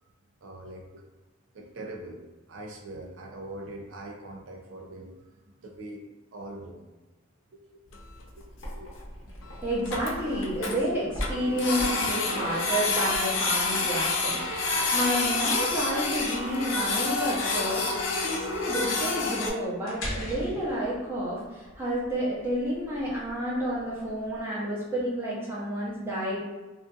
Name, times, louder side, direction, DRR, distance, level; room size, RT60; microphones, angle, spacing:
voice 1, 0.4-1.0 1.5-5.3 5.6-6.0 6.3-6.9 7.5-7.8 8.4-9.3 12.3-12.7, right 1 dB, 65° right, 2 dB, 0.4 m, -43 dB
sound 1, 7.9-24.4, equal, 80° left, 0.8 m, -41 dB
Printer, 7.9-8.2 8.7-8.8 9.0-9.1 9.4-9.5 9.7-10.8 11.2-19.5, left 3 dB, 65° left, 0.4 m, -28 dB
voice 2, 9.6-26.4, equal, 10° right, -8 dB, 0.7 m, -30 dB
2.5 x 2.4 x 2.4 m, 1.2 s
head